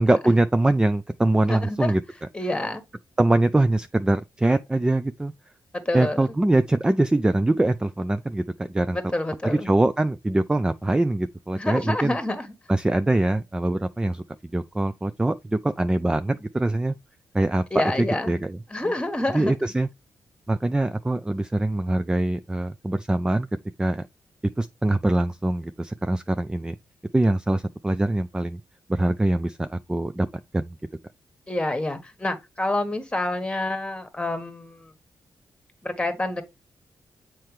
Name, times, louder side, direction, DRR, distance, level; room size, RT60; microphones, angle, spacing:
voice 1, 0.0-2.0 3.2-5.3 5.9-9.0 9.4-12.2 12.7-14.2 14.5-16.9 17.3-17.9 18.3-18.6 19.3-19.9 20.5-23.5 23.8-24.1 24.6-26.8 27.1-28.6 28.9-30.3 30.5-30.8, right 2 dB, 10° right, 0.4 m, -23 dB
voice 2, 1.5-1.9 2.3-2.8 5.7-6.3 8.9-9.7 11.5-12.5 17.7-19.5 31.5-34.9 35.8-36.4, left 2 dB, 15° left, 1.4 m, -28 dB
7.7 x 4.4 x 3.2 m
cardioid pair, 105°, 7 cm